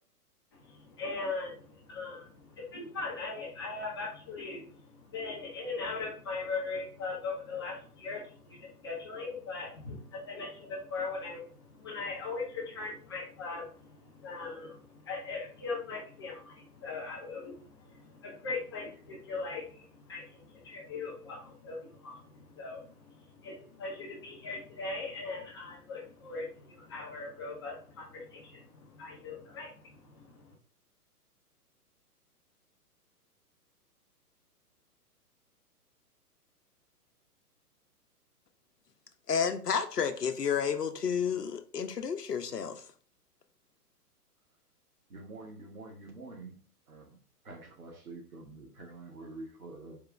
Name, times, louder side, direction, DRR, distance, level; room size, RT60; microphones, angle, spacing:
voice 1, 0.5-30.5, left 3 dB, 15° left, 0.5 m, -40 dB
voice 2, 39.3-42.8, left 7 dB, 75° left, 0.8 m, -31 dB
voice 3, 45.1-46.6 46.9-47.2 47.4-50.0, right 2 dB, 60° right, 1.5 m, -47 dB
4.6 x 2.9 x 3.4 m
figure-of-eight pair, 120°, 48 cm